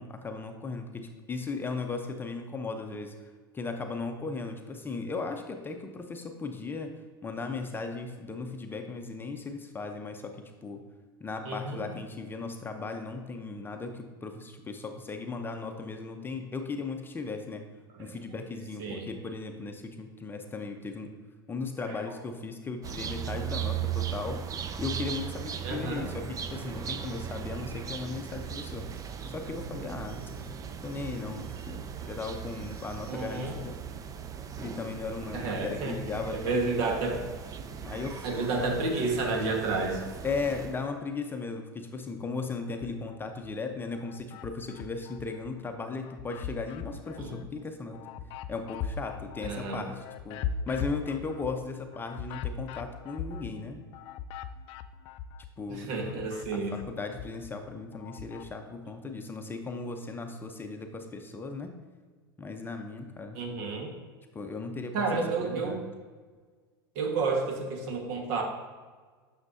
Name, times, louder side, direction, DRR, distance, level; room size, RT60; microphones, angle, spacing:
voice 1, 0.0-6.9 7.2-10.8 11.2-17.6 18.0-21.1 21.5-24.4 24.8-28.9 29.3-30.2 30.8-33.7 34.5-37.0 37.8-38.3 38.5-38.7 40.2-48.1 48.5-53.8 55.6-55.9 56.5-61.8 62.4-63.4 64.3-65.8, left 4 dB, 15° left, 5 dB, 0.7 m, -37 dB
voice 2, 11.4-11.8 18.1-18.2 18.8-19.1 21.9-22.2 25.6-26.1 33.1-33.6 35.3-36.0 36.3-37.2 38.2-40.0 47.2-47.3 49.4-49.8 55.7-56.7 63.3-63.9 64.9-65.8 66.9-68.4, right 3 dB, 55° right, 3 dB, 1.5 m, -31 dB
sound 1, 22.8-40.8, right 8 dB, 30° right, 0.6 m, -38 dB
sound 2, 42.7-43.5 43.9-45.5 45.9-55.6 55.9-58.5, left 7 dB, 45° left, 0.4 m, -40 dB
9.4 x 6.5 x 2.7 m, 1.5 s
hypercardioid pair, 85°, 12 cm